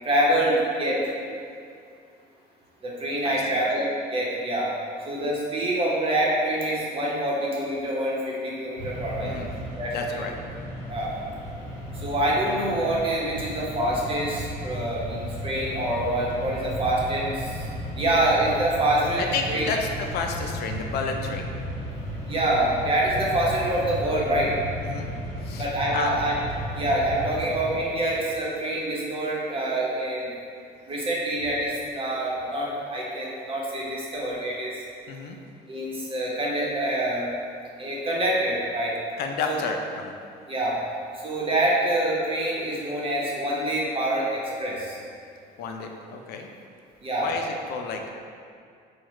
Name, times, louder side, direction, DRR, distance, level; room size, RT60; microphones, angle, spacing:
voice 1, 0.0-1.0 2.8-4.7 5.0-9.3 9.8-10.2 10.9-11.1 11.9-17.6 18.0-19.7 22.3-24.5 25.6-26.3 26.7-30.3 30.9-34.7 35.7-37.3 37.8-38.9 39.5-39.6 40.5-40.8 41.1-45.0 47.0-47.3, right 1 dB, 35° right, -4 dB, 1.0 m, -26 dB
voice 2, 3.2-3.6 9.2-9.5 9.9-10.3 19.2-21.5 24.8-25.1 25.4-26.1 35.1-35.4 39.2-40.1 45.6-46.5 47.2-48.1, left 5 dB, 70° left, 3 dB, 0.5 m, -31 dB
Mechanisms, 8.8-28.2, equal, 55° left, 1.5 m, -35 dB
4.6 x 2.4 x 4.2 m, 2.3 s
cardioid pair, 110°, 17 cm